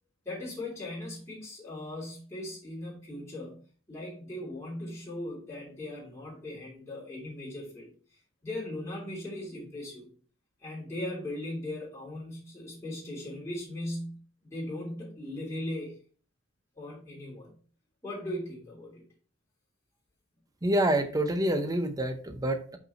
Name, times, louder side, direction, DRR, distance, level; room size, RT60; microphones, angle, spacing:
voice 1, 0.2-3.6 3.9-7.9 8.4-10.1 10.6-15.9 16.8-17.5 18.0-19.0, left 1 dB, 15° left, -5 dB, 2.9 m, -38 dB
voice 2, 20.6-22.8, right 1 dB, 15° right, 7 dB, 0.7 m, -27 dB
5.6 x 4.6 x 4.2 m, 0.42 s
head